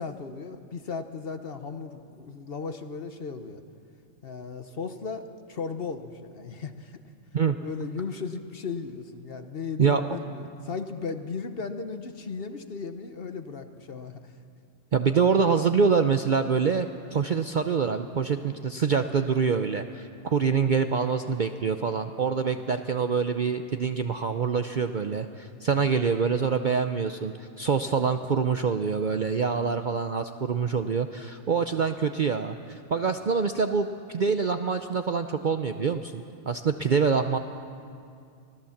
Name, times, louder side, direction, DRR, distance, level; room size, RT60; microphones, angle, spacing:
voice 1, 0.0-3.6 4.2-5.2 5.5-7.0 7.6-14.3, left 5 dB, 50° left, 8 dB, 1.1 m, -36 dB
voice 2, 14.9-37.4, right 5 dB, 50° right, 7 dB, 0.6 m, -25 dB
24.5 x 16.5 x 7.2 m, 2.4 s
omnidirectional pair, 1.4 m